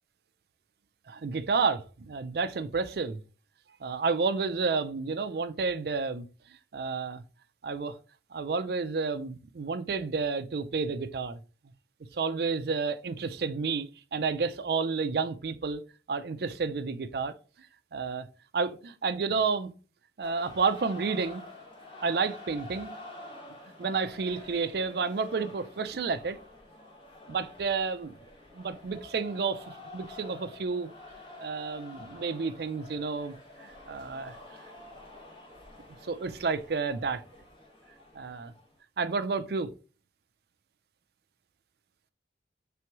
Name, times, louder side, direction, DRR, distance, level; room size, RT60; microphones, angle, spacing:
voice 1, 1.1-3.2 3.8-6.3 6.7-7.2 7.6-8.0 8.3-11.4 12.1-15.8 16.1-17.3 17.9-18.3 18.5-19.7 20.2-21.4 22.0-22.9 23.8-26.4 27.3-28.2 28.5-30.9 31.4-34.4 36.0-37.2 38.1-38.5 39.0-39.7, right 4 dB, 60° right, 0.4 m, -30 dB
sound 1, 20.2-38.7, left 2 dB, 30° left, 1.0 m, -48 dB
3.4 x 3.0 x 4.6 m
head